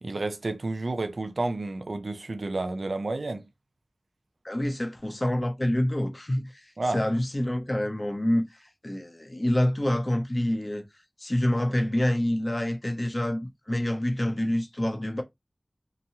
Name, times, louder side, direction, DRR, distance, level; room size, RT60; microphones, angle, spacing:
voice 1, 0.0-3.4 6.8-7.0, right 2 dB, 80° right, 0.4 m, -30 dB
voice 2, 4.4-6.6 6.9-10.8 11.2-15.2, left 1 dB, 35° left, 0.6 m, -27 dB
2.9 x 2.2 x 2.7 m
wide cardioid pair, 45°, 0 cm